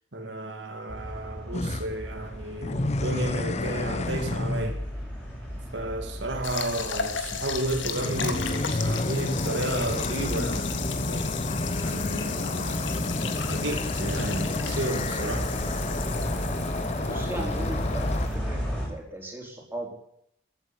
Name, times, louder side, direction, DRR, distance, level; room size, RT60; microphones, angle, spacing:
voice 1, 0.1-4.8 5.7-11.3 11.8-15.5 17.1-17.2, right 1 dB, 75° right, 2.2 m, -33 dB
sound 1, 0.9-18.9, equal, 5° left, 5.9 m, -35 dB
sound 2, 1.5-1.9 2.6-4.8 7.8-18.3, left 2 dB, 35° left, 0.7 m, -30 dB
sound 3, 6.4-18.3, left 7 dB, 80° left, 1.8 m, -36 dB
voice 2, 17.0-18.6 18.9-19.9, right 1 dB, 10° right, 4.5 m, -37 dB
14.5 x 9.1 x 10.0 m
head